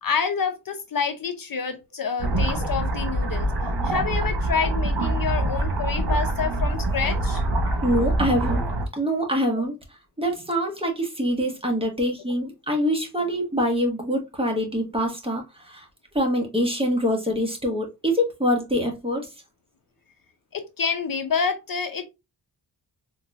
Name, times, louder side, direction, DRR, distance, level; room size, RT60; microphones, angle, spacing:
voice 1, 0.0-3.5 3.8-7.4 9.6-9.7 20.5-22.0, left 6 dB, 55° left, 0.6 m, -28 dB
sound 1, 2.2-8.9, right 1 dB, 65° right, 1.3 m, -25 dB
voice 2, 7.8-8.6 8.9-9.7 10.2-15.9 16.1-19.3, equal, 15° right, 1.2 m, -25 dB
3.8 x 2.9 x 2.4 m
wide cardioid pair, 80°, 42 cm